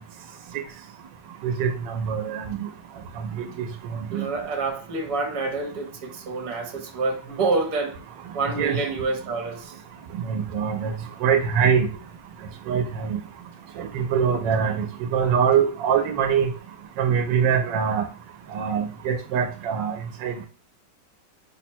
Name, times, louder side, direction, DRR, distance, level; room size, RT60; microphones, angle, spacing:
voice 1, 1.4-2.6 4.1-4.3 8.6-8.8 10.3-10.9 11.2-11.9 12.7-13.2 13.8-14.9 15.1-16.5 17.0-18.1 18.5-20.0 20.2-20.5, right 7 dB, 85° right, 1.3 m, -23 dB
voice 2, 4.1-8.0 8.3-9.7 14.5-14.8, right 3 dB, 70° right, 1.4 m, -28 dB
5.8 x 2.1 x 4.2 m
omnidirectional pair, 1.9 m